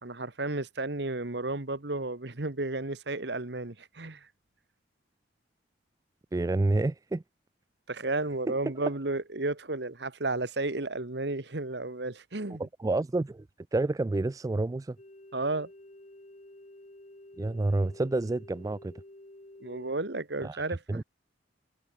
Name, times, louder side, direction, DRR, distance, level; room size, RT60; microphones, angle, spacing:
voice 1, 0.0-4.3 7.9-12.6 15.3-15.7 19.6-21.0, right 2 dB, 65° right, 1.6 m, -33 dB
voice 2, 6.3-7.2 8.5-8.6 12.6-13.5 13.7-15.0 17.4-18.9 20.4-20.6 20.9-21.0, right 2 dB, 20° right, 0.3 m, -29 dB
sound 1, 15.0-20.1, left 1 dB, 40° left, 2.0 m, -51 dB
head